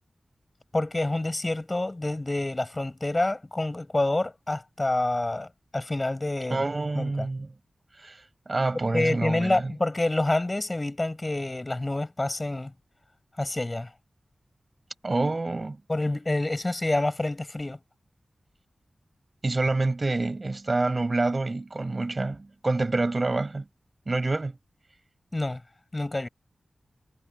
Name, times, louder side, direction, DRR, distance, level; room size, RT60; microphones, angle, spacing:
voice 1, 0.7-5.5 5.7-6.6 7.0-7.3 8.9-12.7 13.4-13.9 15.9-17.8 25.3-25.6 25.9-26.3, left 2 dB, 30° left, 6.1 m, -27 dB
voice 2, 6.5-7.5 8.0-9.7 15.0-15.8 19.4-23.7 24.1-24.6, right 2 dB, 40° right, 6.3 m, -27 dB
wide cardioid pair, 70°, 0 cm